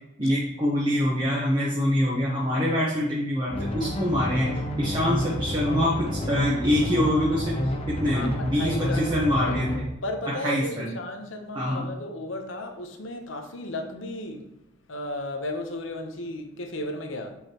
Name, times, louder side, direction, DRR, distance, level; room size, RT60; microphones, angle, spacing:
voice 1, 0.2-9.9 10.2-10.9 11.5-11.9, equal, 25° right, 1.0 m, -25 dB
sound 1, 3.5-9.8, equal, 30° left, 0.8 m, -29 dB
voice 2, 8.1-9.6 10.0-14.5 14.9-17.4, left 1 dB, 80° left, 0.9 m, -34 dB
6.5 x 5.5 x 3.0 m
head